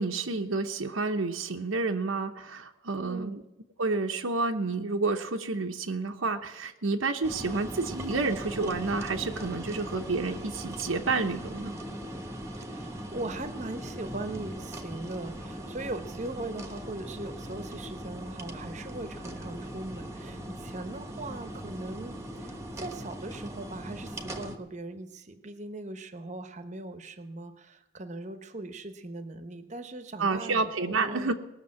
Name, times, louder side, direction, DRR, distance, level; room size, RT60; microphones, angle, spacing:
voice 1, 0.0-3.4 3.8-11.7 30.2-31.3, right 3 dB, 90° right, 4 dB, 0.9 m, -30 dB
voice 2, 3.0-3.4 12.6-31.3, right 2 dB, 35° right, 9 dB, 1.0 m, -40 dB
sound 1, 7.2-24.6, right 1 dB, 15° right, 1.1 m, -40 dB
19.5 x 6.7 x 8.6 m, 0.96 s
head